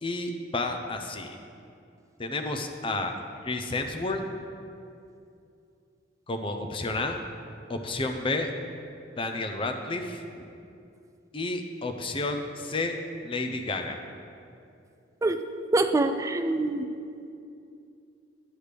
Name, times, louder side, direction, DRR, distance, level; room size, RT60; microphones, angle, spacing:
voice 1, 0.0-1.4 2.2-3.1 3.4-4.2 6.3-7.2 7.7-8.5 9.2-10.2 11.3-13.0 13.2-14.0, left 2 dB, 30° left, 5 dB, 0.5 m, -31 dB
voice 2, 15.7-16.9, right 2 dB, 15° right, 7 dB, 0.3 m, -25 dB
9.3 x 8.2 x 3.4 m, 2.5 s
head